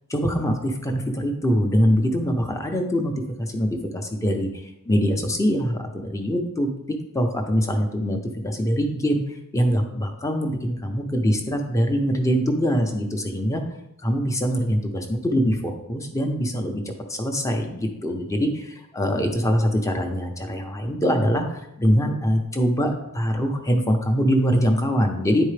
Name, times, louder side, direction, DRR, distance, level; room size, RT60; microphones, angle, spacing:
voice 1, 0.1-3.1 3.4-6.7 7.1-8.2 8.4-9.2 9.5-13.6 14.0-16.8 17.1-25.5, equal, 15° left, 4 dB, 0.8 m, -23 dB
9.9 x 4.5 x 3.3 m, 0.83 s
head